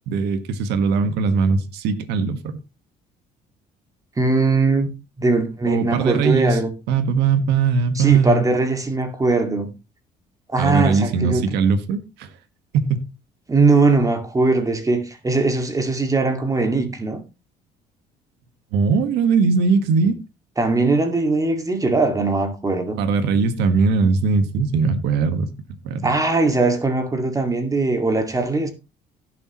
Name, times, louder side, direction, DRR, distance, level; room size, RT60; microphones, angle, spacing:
voice 1, 0.1-2.6 5.7-6.6 6.9-8.5 10.6-12.3 12.7-13.0 18.7-20.1 23.0-25.5 25.8-26.1, right 5 dB, 90° right, 1.5 m, -20 dB
voice 2, 4.2-4.9 5.2-6.7 8.0-9.7 10.5-11.4 13.5-17.2 20.6-23.0 26.0-28.7, right 3 dB, 20° right, 2.1 m, -20 dB
16.5 x 6.9 x 3.1 m
cardioid pair, 110°, 17 cm